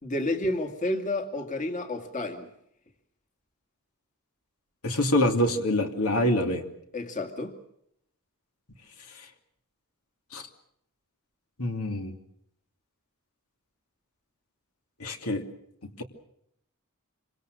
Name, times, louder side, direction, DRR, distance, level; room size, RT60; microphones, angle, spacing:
voice 1, 0.0-2.5 6.9-7.5, left 1 dB, 35° left, 6 dB, 2.3 m, -30 dB
voice 2, 4.8-6.6 9.2-9.3 10.3-10.5 11.6-12.1 15.0-15.4 16.0-16.1, left 1 dB, 80° left, 5 dB, 2.8 m, -25 dB
27.0 x 25.0 x 6.5 m, 0.74 s
head